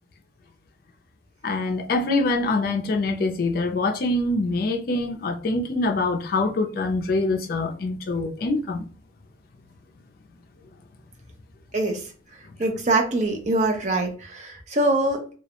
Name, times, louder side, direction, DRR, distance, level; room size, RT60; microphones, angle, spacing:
voice 1, 1.4-8.9, left 2 dB, 50° left, 0.4 m, -24 dB
voice 2, 12.6-15.4, right 2 dB, 40° right, 0.5 m, -23 dB
2.3 x 2.1 x 2.8 m
head